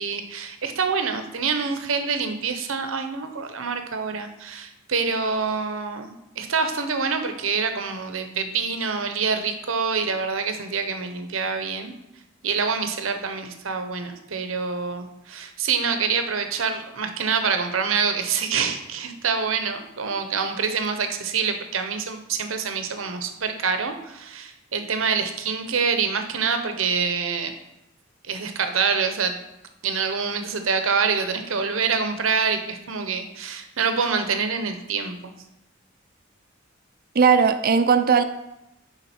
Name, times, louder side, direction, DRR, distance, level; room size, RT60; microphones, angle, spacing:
voice 1, 0.0-11.9 12.4-27.5 28.3-29.4 29.8-35.3, right 5 dB, 75° right, 7 dB, 0.8 m, -26 dB
voice 2, 37.2-38.2, right 6 dB, 45° right, 9 dB, 0.5 m, -17 dB
10.0 x 3.8 x 4.3 m, 0.88 s
head